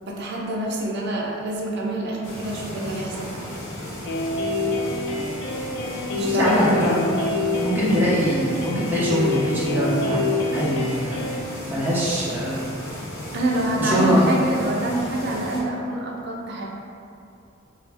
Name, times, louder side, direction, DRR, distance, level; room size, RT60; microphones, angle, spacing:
voice 1, 0.0-3.5 6.0-6.8 13.3-16.6, right 1 dB, 55° right, -2 dB, 0.5 m, -26 dB
sound 1, 2.2-15.6, left 1 dB, 85° left, 0.8 m, -35 dB
sound 2, 4.0-11.4, left 2 dB, 60° left, 0.3 m, -27 dB
voice 2, 6.2-7.2 7.6-10.2 10.5-12.7 13.8-14.3, equal, 10° right, -9 dB, 0.7 m, -23 dB
3.0 x 2.0 x 3.3 m, 2.6 s
head